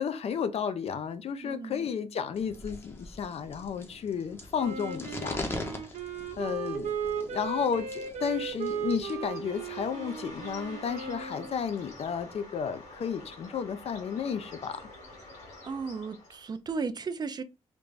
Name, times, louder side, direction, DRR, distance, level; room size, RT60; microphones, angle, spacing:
voice 1, 0.0-5.4 6.4-14.9, left 7 dB, 60° left, 0.5 m, -33 dB
voice 2, 1.4-1.9 15.6-17.4, right 5 dB, 35° right, 0.4 m, -35 dB
sound 1, 2.3-9.2, left 2 dB, 20° left, 0.7 m, -42 dB
Wind instrument woodwind instrument, 4.5-11.7, right 7 dB, 90° right, 0.8 m, -36 dB
Bird, 8.8-16.6, left 2 dB, 80° left, 1.8 m, -48 dB
3.4 x 2.5 x 3.1 m
wide cardioid pair, 140°, 12 cm